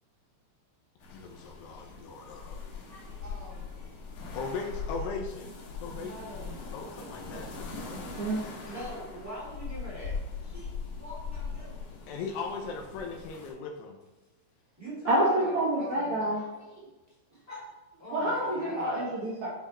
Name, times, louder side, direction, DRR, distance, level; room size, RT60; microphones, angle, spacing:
sound 1, 1.0-13.5, left 5 dB, 55° left, 2.7 m, -40 dB
voice 1, 1.1-2.6 4.3-5.5 5.8-6.2 6.7-7.5 12.1-14.0, left 4 dB, 75° left, 1 dB, 2.7 m, -38 dB
voice 2, 2.9-4.0 4.9-5.1 5.9-6.7 7.0-7.6 8.6-11.9 14.8-16.9 17.3-19.1, equal, 5° right, -5 dB, 1.3 m, -44 dB
voice 3, 7.9-8.4 15.1-16.4 18.1-19.5, right 1 dB, 55° right, -3 dB, 2.2 m, -28 dB
12.5 x 5.0 x 4.3 m, 1.1 s
omnidirectional pair, 5.2 m